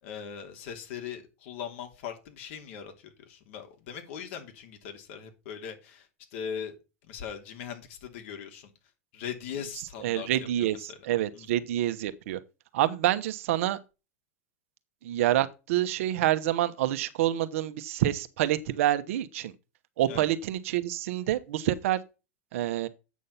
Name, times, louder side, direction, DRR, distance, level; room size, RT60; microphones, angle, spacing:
voice 1, 0.0-6.7 7.0-8.7 9.1-11.1 11.3-11.5 20.1-20.3, left 8 dB, 60° left, 2.8 m, -40 dB
voice 2, 10.0-10.8 11.0-12.4 12.7-13.8 15.0-19.5 20.0-22.0 22.5-22.9, right 13 dB, 65° right, 1.1 m, -27 dB
8.3 x 6.5 x 5.6 m
hypercardioid pair, 125°, 8 cm